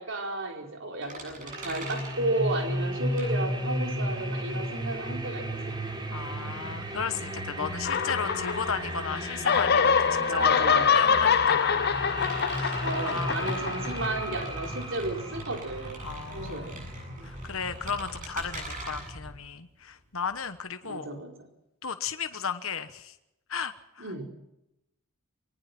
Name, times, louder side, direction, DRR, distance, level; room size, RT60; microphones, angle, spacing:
voice 1, 0.0-5.7 10.3-11.0 12.8-16.0 16.3-16.8 17.2-17.3 20.8-21.3 24.0-24.3, right 2 dB, 55° right, 2 dB, 4.9 m, -33 dB
sound 1, 1.0-3.9 4.2-20.6, right 3 dB, 35° right, 7.9 m, -44 dB
sound 2, 1.4-19.4, equal, 20° right, 4.2 m, -34 dB
voice 2, 6.1-10.4 10.9-13.5 16.0-16.9 17.2-21.1 21.8-23.1 23.5-24.2, left 6 dB, 65° left, 9 dB, 1.2 m, -35 dB
sound 3, 7.8-9.0 9.2-14.2, left 7 dB, 45° left, 0.7 m, -25 dB
24.5 x 19.0 x 6.1 m, 0.86 s
head